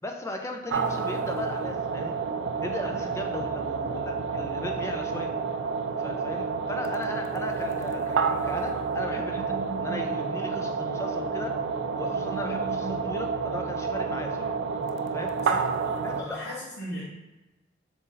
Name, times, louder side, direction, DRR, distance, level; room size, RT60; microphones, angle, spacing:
voice 1, 0.0-2.1 2.6-5.3 6.0-11.6 12.0-14.5 15.1-15.4 16.0-16.4, left 2 dB, 15° left, 3 dB, 0.4 m, -37 dB
sound 1, 0.7-16.2, right 5 dB, 70° right, 0.3 m, -29 dB
voice 2, 15.4-17.0, equal, 60° left, -7 dB, 1.0 m, -38 dB
3.9 x 2.6 x 3.9 m, 1.0 s
head